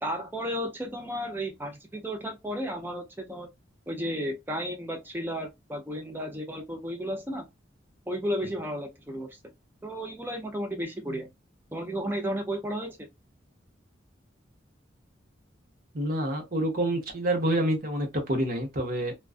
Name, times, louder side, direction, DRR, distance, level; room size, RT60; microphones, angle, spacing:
voice 1, 0.0-3.5 3.9-7.4 8.1-9.4 9.8-11.3 11.7-13.1, equal, 10° right, 0.5 m, -33 dB
voice 2, 15.9-19.2, right 1 dB, 50° right, 0.8 m, -27 dB
2.4 x 2.2 x 2.4 m
head